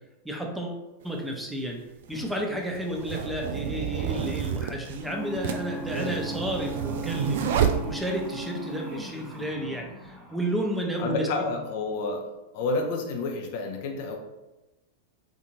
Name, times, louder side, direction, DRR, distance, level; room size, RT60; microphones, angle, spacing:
voice 1, 0.2-1.8 2.1-7.4 7.8-11.5, right 1 dB, 5° right, 1 dB, 0.6 m, -32 dB
sound 1, 1.0-1.1 2.0-8.5, right 8 dB, 55° right, 0.3 m, -30 dB
sound 2, 5.0-11.4, right 1 dB, 30° right, 0.9 m, -39 dB
voice 2, 11.0-12.3 12.5-14.2, left 3 dB, 50° left, 2 dB, 0.5 m, -29 dB
3.7 x 2.5 x 3.0 m, 1.0 s
figure-of-eight pair, 90°, 0 cm